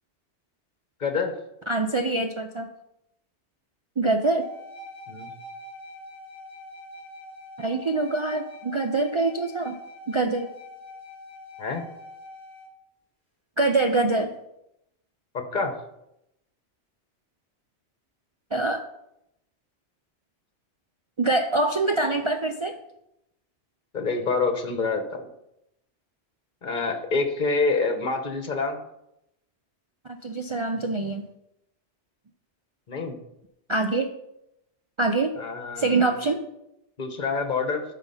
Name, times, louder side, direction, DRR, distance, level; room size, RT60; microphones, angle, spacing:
voice 1, 1.0-1.3 5.1-5.3 11.6-11.8 15.3-15.8 23.9-25.3 26.6-28.8 32.9-33.2 35.4-36.2 37.0-37.8, left 4 dB, 45° left, 6 dB, 1.2 m, -27 dB
voice 2, 1.7-2.7 4.0-4.5 7.6-9.7 10.1-10.5 13.6-14.3 18.5-18.8 21.2-22.7 30.2-31.3 33.7-34.1 35.0-35.3 35.8-36.4, right 2 dB, 45° right, 4 dB, 0.4 m, -24 dB
sound 1, 4.4-12.7, left 1 dB, 25° right, 3.2 m, -44 dB
12.0 x 4.1 x 5.5 m, 0.83 s
omnidirectional pair, 1.2 m